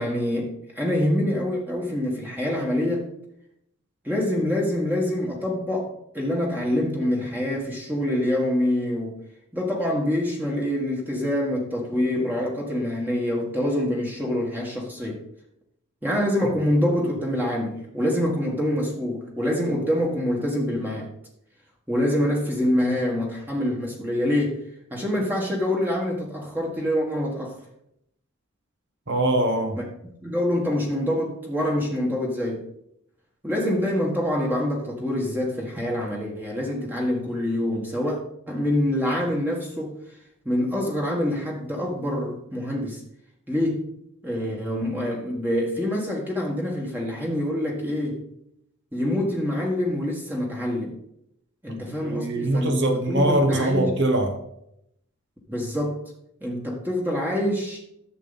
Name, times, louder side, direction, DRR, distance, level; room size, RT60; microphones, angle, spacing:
voice 1, 0.0-3.1 4.0-9.2 9.5-15.2 16.0-21.1 21.9-24.6 24.9-27.6 29.8-29.9 30.2-32.6 33.4-38.2 38.5-39.9 40.4-43.0 43.5-43.8 44.2-48.2 48.9-51.0 51.6-53.9 55.5-56.0 56.4-57.8, left 1 dB, 10° right, 1.5 m, -25 dB
voice 2, 29.1-29.8 51.7-54.4, right 1 dB, 55° right, 1.4 m, -23 dB
11.0 x 7.4 x 4.1 m
head